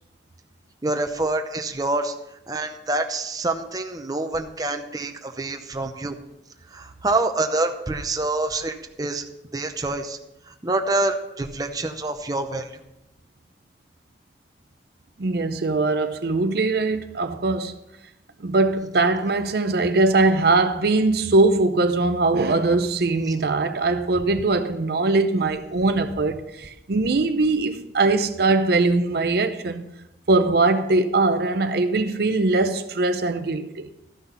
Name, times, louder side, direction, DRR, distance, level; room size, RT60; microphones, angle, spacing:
voice 1, 0.8-2.1 2.5-6.2 6.7-9.2 9.5-10.2 10.6-12.7, right 2 dB, 20° right, 0.7 m, -26 dB
voice 2, 15.2-17.8 18.4-29.9 30.3-33.9, right 3 dB, 60° right, 0.6 m, -21 dB
13.0 x 6.0 x 5.5 m
head